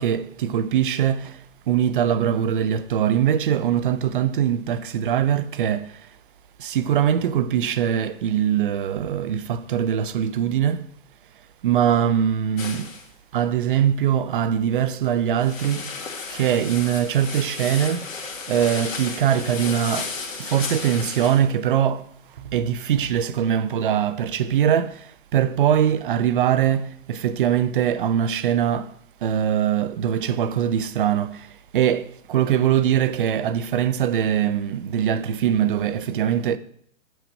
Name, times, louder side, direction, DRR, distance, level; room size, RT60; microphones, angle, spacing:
voice 1, 0.0-1.4 1.7-6.1 6.6-10.8 11.6-12.9 13.3-15.9 16.3-18.1 18.5-20.1 20.4-22.1 22.4-28.9 29.2-36.6, right 9 dB, 40° right, 0.5 m, -22 dB
sound 1, 12.6-13.1 15.4-21.4, left 4 dB, 75° left, 1.8 m, -34 dB
6.5 x 6.2 x 6.2 m
hypercardioid pair, 140°, 39 cm